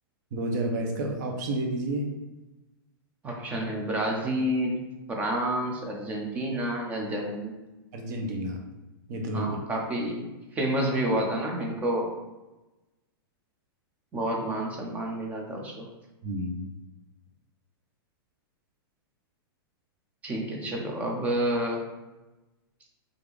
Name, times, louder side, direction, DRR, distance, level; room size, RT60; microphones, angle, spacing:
voice 1, 0.3-2.1 7.9-8.6 9.1-9.6 16.2-16.7, right 1 dB, 45° right, 2 dB, 0.7 m, -30 dB
voice 2, 3.2-4.8 5.1-7.5 9.3-12.1 14.1-15.9 20.2-21.8, right 1 dB, 10° right, 0 dB, 0.4 m, -29 dB
3.3 x 2.5 x 3.3 m, 1.1 s
supercardioid pair, 160°, 13 cm